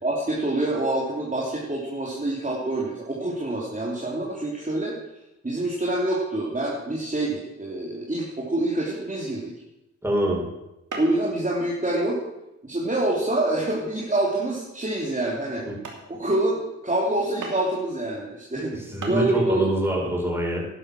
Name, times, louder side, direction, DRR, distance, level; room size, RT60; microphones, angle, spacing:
voice 1, 0.0-4.9 5.4-9.4 11.0-12.2 12.6-15.6 16.1-18.8 19.1-19.6, right 1 dB, 25° right, -4 dB, 3.2 m, -26 dB
sound 1, 9.7-10.0 10.9-11.3 11.7-12.1 12.7-12.8 13.4-13.6 14.2-14.3 14.9-15.0 15.4-15.5 15.8-16.1 17.4-17.8 18.7-18.8 19.0-19.3, right 3 dB, 80° right, 3.0 m, -37 dB
voice 2, 10.0-10.4 15.6-15.7 18.5-18.6 18.9-20.6, right 1 dB, 10° right, -3 dB, 6.1 m, -25 dB
11.5 x 11.5 x 6.1 m, 0.92 s
cardioid pair, 65°, 30 cm